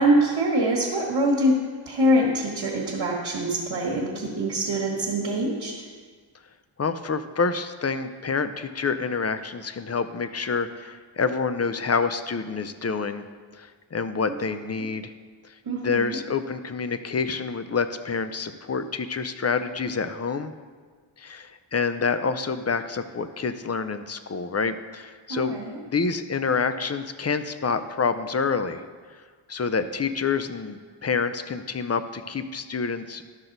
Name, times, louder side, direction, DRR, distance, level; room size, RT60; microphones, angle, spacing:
voice 1, 0.0-1.6 1.8-5.7 15.6-16.2 25.3-25.8, right 1 dB, 65° right, -6 dB, 1.5 m, -24 dB
voice 2, 6.8-13.2 13.5-15.1 15.4-15.5 15.8-20.5 21.2-25.6 25.9-28.8 29.5-33.2, left 5 dB, 35° left, 11 dB, 0.5 m, -27 dB
12.5 x 6.0 x 4.0 m, 1.5 s
wide cardioid pair, 75°, 48 cm